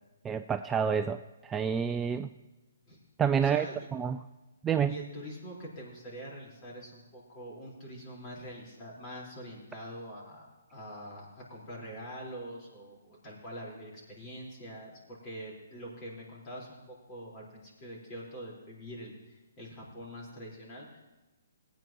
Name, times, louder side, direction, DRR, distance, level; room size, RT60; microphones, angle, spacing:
voice 1, 0.2-2.3 3.2-3.7 3.9-4.2 4.6-5.0, right 7 dB, 15° right, 9 dB, 0.3 m, -28 dB
voice 2, 3.4-3.9 4.9-21.0, equal, 25° left, -4 dB, 4.4 m, -44 dB
21.0 x 9.2 x 3.1 m, 1.1 s
figure-of-eight pair, 135°, 0 cm